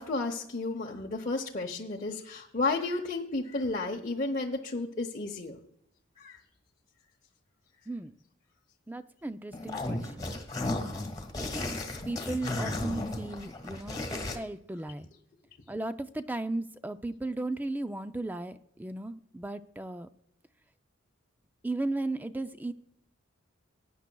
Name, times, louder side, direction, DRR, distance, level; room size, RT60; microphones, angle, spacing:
voice 1, 0.0-5.6 6.2-6.4, left 3 dB, 40° left, -1 dB, 0.8 m, -32 dB
voice 2, 8.9-11.0 11.4-15.1 15.7-20.1 21.6-22.7, right 2 dB, 10° right, 11 dB, 0.3 m, -36 dB
sound 1, 9.5-14.4, left 2 dB, 20° left, 1.5 m, -34 dB
19.0 x 9.5 x 2.3 m, 0.75 s
head